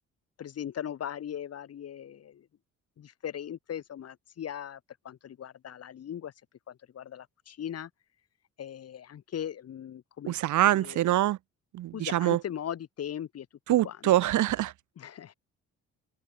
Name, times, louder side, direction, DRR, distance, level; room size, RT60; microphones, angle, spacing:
voice 1, 0.4-2.5 3.0-4.8 5.0-6.3 6.7-7.9 8.6-10.4 10.7-11.1 11.9-13.5 13.8-14.1 15.0-15.3, left 9 dB, 55° left, 1.4 m, -39 dB
voice 2, 10.3-11.4 11.7-12.4 13.7-14.7, right 14 dB, 75° right, 1.2 m, -24 dB
open air
cardioid pair, 90°, 30 cm